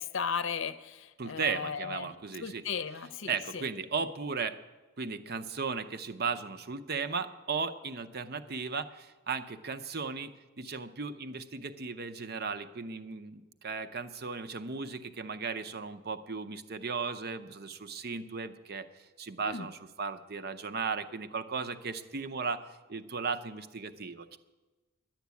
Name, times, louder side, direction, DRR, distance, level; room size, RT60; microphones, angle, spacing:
voice 1, 0.0-2.1 2.4-3.6 19.4-19.7, left 6 dB, 65° left, 11 dB, 0.6 m, -36 dB
voice 2, 1.2-2.6 3.3-4.6 5.0-22.6 22.9-24.4, right 5 dB, 50° right, 10 dB, 0.7 m, -36 dB
10.5 x 10.5 x 8.3 m, 1.2 s
head